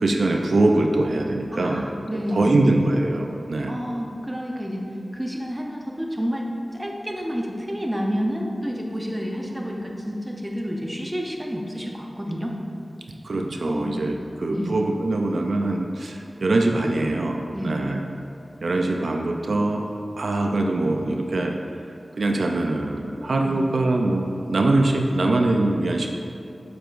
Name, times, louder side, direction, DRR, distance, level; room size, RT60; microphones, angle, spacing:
voice 1, 0.0-1.8 2.1-3.7 13.2-18.0 18.6-19.9 20.2-21.6 22.2-26.1, right 2 dB, 85° right, 2 dB, 0.5 m, -23 dB
voice 2, 1.5-2.6 3.7-4.9 5.1-12.6 13.6-13.9 14.5-14.8 17.5-17.9 23.4-23.6, equal, 15° right, 0 dB, 0.8 m, -29 dB
7.7 x 6.8 x 2.5 m, 2.6 s
wide cardioid pair, 60°, 0 cm